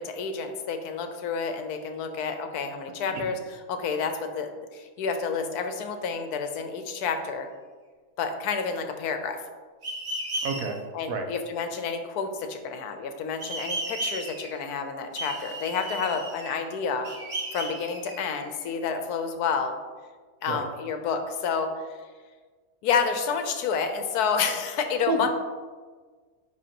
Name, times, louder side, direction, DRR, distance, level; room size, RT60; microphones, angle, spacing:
voice 1, 0.0-7.5 8.2-9.4 10.9-17.1 17.5-19.7 20.4-22.0 22.8-25.3, left 5 dB, 80° left, 6 dB, 1.2 m, -29 dB
sound 1, 9.8-10.7 13.4-14.6 15.2-16.6 17.0-18.6, right 2 dB, 40° right, 1.8 m, -34 dB
voice 2, 10.4-10.8 11.1-11.3 20.5-20.6 25.1-25.3, right 3 dB, 65° right, 4 dB, 1.1 m, -29 dB
10.0 x 3.8 x 2.9 m, 1.5 s
omnidirectional pair, 1.7 m